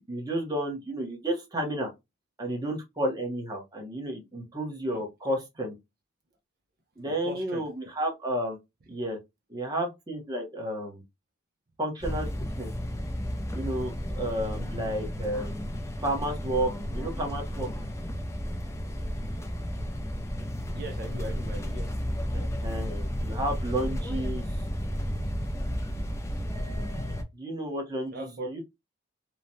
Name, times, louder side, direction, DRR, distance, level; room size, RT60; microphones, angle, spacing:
voice 1, 0.1-1.9 2.4-5.7 7.0-8.6 8.9-9.2 9.5-11.0 11.8-12.3 12.6-12.7 13.5-17.7 22.3-24.4 27.3-28.6, right 1 dB, 20° right, 0.8 m, -32 dB
voice 2, 7.1-7.6 20.7-21.9 28.1-28.6, right 1 dB, 50° right, 0.5 m, -39 dB
sound 1, 12.0-27.2, equal, 15° left, 0.4 m, -33 dB
3.1 x 2.1 x 2.6 m
head